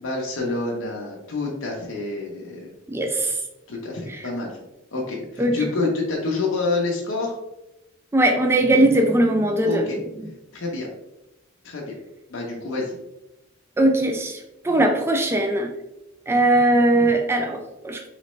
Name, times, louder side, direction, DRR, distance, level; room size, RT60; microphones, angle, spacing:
voice 1, 0.0-2.7 3.7-4.6 4.9-7.4 9.6-10.0 10.5-10.9 11.6-12.0 12.3-13.0, left 3 dB, 70° left, -2 dB, 0.7 m, -27 dB
voice 2, 2.9-3.4 4.1-4.2 5.4-5.5 8.1-9.9 13.8-15.7 16.3-18.1, right 1 dB, 10° right, 3 dB, 0.3 m, -20 dB
4.0 x 3.1 x 3.1 m, 0.93 s
head